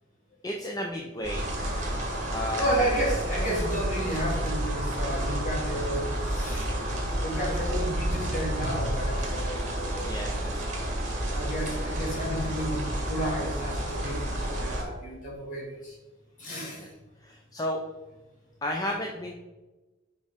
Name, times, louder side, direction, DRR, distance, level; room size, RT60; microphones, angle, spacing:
voice 1, 0.4-2.0 2.3-2.8 10.0-10.9 16.8-16.9 17.2-17.8 18.6-19.3, left 1 dB, 20° left, 0 dB, 0.5 m, -33 dB
sound 1, 1.2-14.8, right 1 dB, 40° right, 1.4 m, -30 dB
voice 2, 2.6-6.7 7.2-10.2 11.3-15.9 16.4-16.9, equal, 40° left, -3 dB, 2.0 m, -32 dB
6.5 x 4.9 x 3.5 m, 1.1 s
head